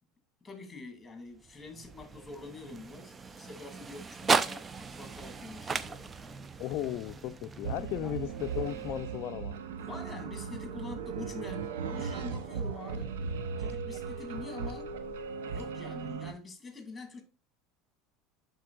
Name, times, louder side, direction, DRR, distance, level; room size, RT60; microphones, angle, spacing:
voice 1, 0.4-6.4 8.0-8.1 9.7-13.1 13.6-14.9 15.4-17.2, left 3 dB, 15° left, 2.1 m, -45 dB
sound 1, 1.3-9.5, right 5 dB, 25° right, 0.5 m, -36 dB
voice 2, 6.6-9.5, left 12 dB, 55° left, 0.4 m, -35 dB
sound 2, 7.6-16.3, right 5 dB, 75° right, 0.7 m, -37 dB
11.0 x 3.9 x 2.4 m
hypercardioid pair, 80°, 0 cm